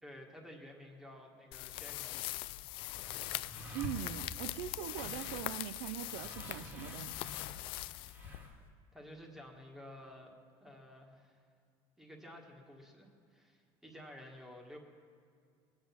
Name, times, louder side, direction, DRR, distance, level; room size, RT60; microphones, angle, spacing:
voice 1, 0.0-2.5 8.9-10.3 10.6-11.4 12.0-14.8, left 1 dB, 5° right, 1 dB, 1.7 m, -52 dB
sound 1, 1.5-8.7, left 18 dB, 55° left, 0.4 m, -42 dB
sound 2, 2.5-8.7, left 1 dB, 20° right, 1.8 m, -49 dB
voice 2, 3.7-7.2, right 13 dB, 80° right, 14 dB, 0.4 m, -42 dB
22.0 x 9.5 x 5.8 m, 2.3 s
cardioid pair, 165°, 11 cm